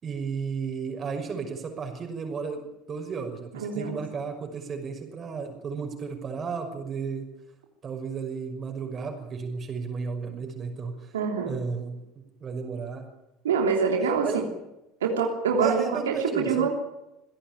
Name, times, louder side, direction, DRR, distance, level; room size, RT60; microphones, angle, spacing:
voice 1, 0.0-7.2 7.8-11.1 11.4-12.0 12.4-13.0 14.2-14.4 15.6-16.7, right 5 dB, 35° right, 4 dB, 5.9 m, -33 dB
voice 2, 3.5-4.0 11.1-11.5 13.4-14.4 15.0-16.7, right 5 dB, 80° right, 2 dB, 3.2 m, -25 dB
26.5 x 16.5 x 9.0 m, 0.92 s
hypercardioid pair, 70°, 0 cm